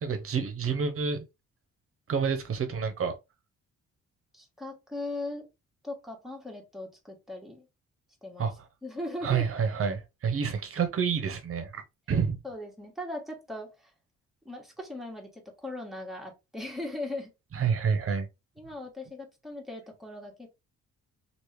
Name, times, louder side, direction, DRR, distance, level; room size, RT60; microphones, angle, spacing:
voice 1, 0.0-1.2 2.1-3.1 8.4-8.5 9.2-11.8 12.1-12.4 17.5-18.3, right 6 dB, 50° right, 0.9 m, -28 dB
voice 2, 4.3-5.5 5.8-7.7 8.2-8.5 8.8-9.5 12.4-13.9 14.4-17.3 18.6-20.5, left 1 dB, ahead, 1.3 m, -39 dB
2.9 x 2.8 x 3.2 m
cardioid pair, 90°, 30 cm